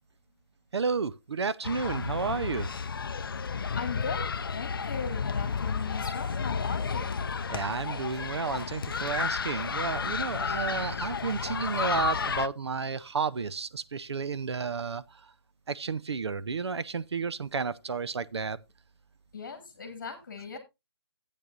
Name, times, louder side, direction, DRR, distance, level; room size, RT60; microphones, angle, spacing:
voice 1, 0.7-2.7 7.5-15.2 15.7-18.6, right 5 dB, 80° right, 0.7 m, -32 dB
sound 1, 1.6-12.5, left 5 dB, 55° left, 0.4 m, -32 dB
voice 2, 3.7-7.2 19.3-20.6, left 5 dB, 30° left, 1.6 m, -38 dB
13.5 x 8.4 x 2.4 m
hypercardioid pair, 180°, 14 cm